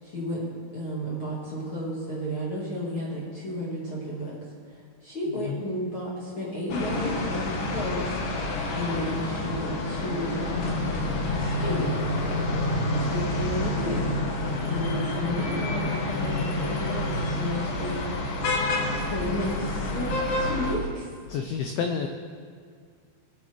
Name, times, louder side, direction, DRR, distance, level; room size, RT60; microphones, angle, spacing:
voice 1, 0.0-0.4 0.7-4.4 4.7-11.0 11.4-12.2 12.8-14.2 14.6-18.0 19.0-20.1 20.4-21.1, left 1 dB, 40° left, -6 dB, 2.4 m, -33 dB
sound 1, 6.7-20.7, left 2 dB, 60° left, 2.9 m, -28 dB
voice 2, 21.3-22.1, left 6 dB, 80° left, 5 dB, 2.3 m, -29 dB
18.5 x 8.5 x 4.7 m, 2.1 s
omnidirectional pair, 4.9 m